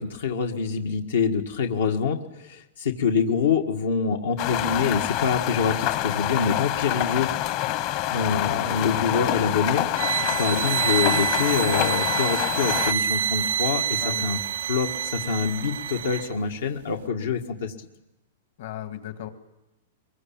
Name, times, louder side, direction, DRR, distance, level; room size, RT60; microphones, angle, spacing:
voice 1, 0.0-7.3 8.1-9.9 10.4-14.4 14.7-17.7, left 5 dB, 90° left, 3 dB, 1.8 m, -25 dB
sound 1, 4.4-12.9, left 13 dB, 45° left, 1.0 m, -27 dB
voice 2, 8.2-8.8 10.1-10.4 14.0-14.3 18.6-19.3, left 12 dB, 65° left, 8 dB, 2.0 m, -35 dB
sound 2, 9.9-16.3, right 9 dB, 80° right, 0.8 m, -27 dB
23.0 x 22.0 x 8.8 m, 0.94 s
hypercardioid pair, 150°, 0 cm